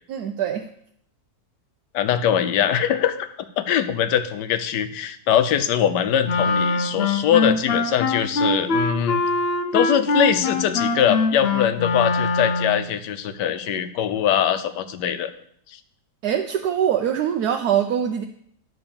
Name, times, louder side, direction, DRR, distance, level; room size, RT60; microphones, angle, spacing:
voice 1, 0.1-0.6 16.2-18.2, right 9 dB, 70° right, 5 dB, 1.1 m, -23 dB
voice 2, 1.9-3.3 3.6-9.2 9.7-15.3 15.7-15.8, left 9 dB, 85° left, 11 dB, 1.3 m, -22 dB
Wind instrument woodwind instrument, 6.2-12.9, left 3 dB, 55° left, 0.7 m, -22 dB
10.5 x 4.4 x 7.0 m, 0.67 s
omnidirectional pair, 1.8 m